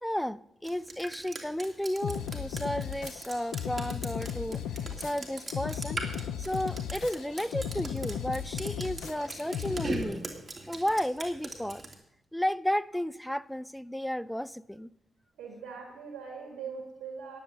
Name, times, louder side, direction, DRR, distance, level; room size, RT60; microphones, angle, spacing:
voice 1, 0.0-4.6 5.0-6.0 6.4-10.3 10.7-11.8 12.3-14.9, equal, 5° left, 0.5 m, -33 dB
Drip, 0.6-11.9, right 3 dB, 35° right, 2.7 m, -40 dB
sound 1, 2.0-10.0, left 9 dB, 85° left, 0.5 m, -36 dB
voice 2, 15.4-17.4, right 5 dB, 80° right, 1.8 m, -41 dB
10.5 x 8.1 x 7.6 m
supercardioid pair, 45°, 0 cm